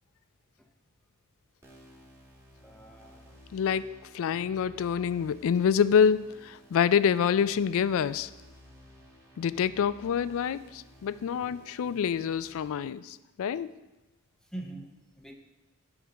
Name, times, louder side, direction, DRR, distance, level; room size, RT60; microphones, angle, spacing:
sound 1, 1.6-12.7, equal, 15° right, 1.4 m, -55 dB
voice 1, 2.6-3.4 14.4-15.3, right 1 dB, 5° left, 3 dB, 0.7 m, -44 dB
voice 2, 3.5-3.9 4.1-8.3 9.4-13.7, left 7 dB, 65° left, 16 dB, 0.3 m, -26 dB
10.0 x 3.6 x 6.2 m, 1.1 s
head